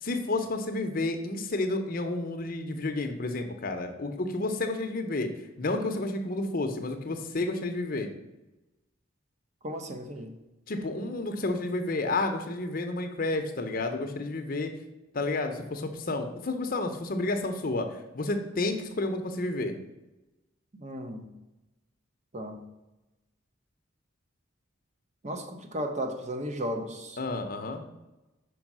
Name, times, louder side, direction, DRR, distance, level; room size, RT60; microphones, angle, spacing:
voice 1, 0.0-5.3 5.6-8.1 10.7-14.7 15.1-19.8 27.2-27.8, left 2 dB, 45° left, 0.7 m, -31 dB
voice 2, 9.6-10.3 20.7-21.3 22.3-22.6 25.2-27.2, equal, 35° right, 0.8 m, -35 dB
5.4 x 4.8 x 6.0 m
head